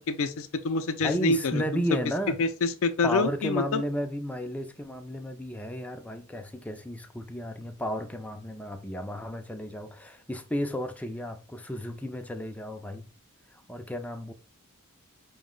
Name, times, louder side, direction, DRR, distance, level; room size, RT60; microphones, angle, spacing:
voice 1, 0.1-1.8 2.4-3.8, left 3 dB, 65° left, 0.4 m, -27 dB
voice 2, 1.0-2.4 3.0-13.1 13.5-14.3, equal, 5° left, 0.4 m, -33 dB
5.1 x 2.1 x 3.7 m
head